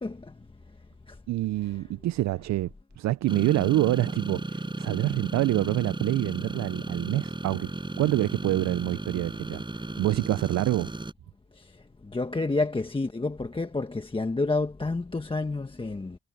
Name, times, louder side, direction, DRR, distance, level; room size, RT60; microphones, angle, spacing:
voice 1, 1.3-7.7 8.0-9.6 10.0-10.9, right 16 dB, 65° right, 0.4 m, -26 dB
sound 1, 3.3-11.1, right 2 dB, 15° right, 5.9 m, -35 dB
voice 2, 12.1-16.2, left 3 dB, 15° left, 1.4 m, -29 dB
cardioid pair, 90°, 30 cm